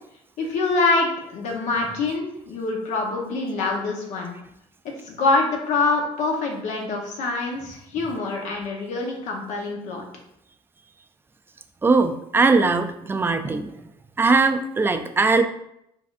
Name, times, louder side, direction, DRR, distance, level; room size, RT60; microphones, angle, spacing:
voice 1, 0.4-4.3 5.0-10.0, left 3 dB, 70° left, 1 dB, 1.0 m, -25 dB
voice 2, 11.8-13.7 14.2-15.4, right 3 dB, 15° right, 7 dB, 0.4 m, -20 dB
4.9 x 3.4 x 2.5 m, 0.78 s
cardioid pair, 105°, 13 cm